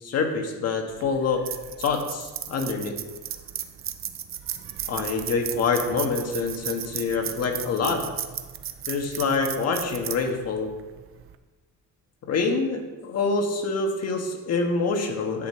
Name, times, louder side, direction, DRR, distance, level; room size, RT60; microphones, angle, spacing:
voice 1, 0.0-1.4 1.8-2.9 4.9-8.0 8.9-10.7 12.3-15.5, left 4 dB, 50° left, 3 dB, 1.6 m, -26 dB
sound 1, 0.9-11.4, right 10 dB, 45° right, 0.6 m, -36 dB
10.5 x 8.1 x 4.5 m, 1.2 s
cardioid pair, 145°, 32 cm